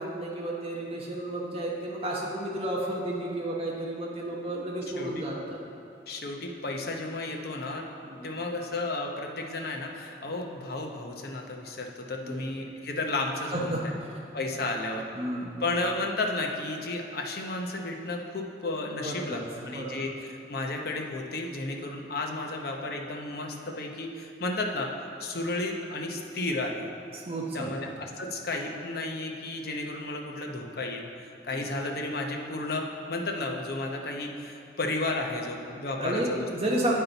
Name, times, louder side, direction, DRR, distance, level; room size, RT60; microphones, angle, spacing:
voice 1, 0.0-5.6 8.0-8.3 12.2-12.4 13.5-13.8 15.1-15.6 19.0-20.0 27.1-27.8 31.5-31.7 36.0-36.9, right 1 dB, 35° right, -3 dB, 0.9 m, -32 dB
voice 2, 6.1-7.8 8.2-13.9 14.3-15.1 15.6-24.9 25.2-26.9 27.5-36.4, left 2 dB, 60° left, 2 dB, 0.8 m, -33 dB
8.5 x 5.6 x 4.0 m, 2.9 s
head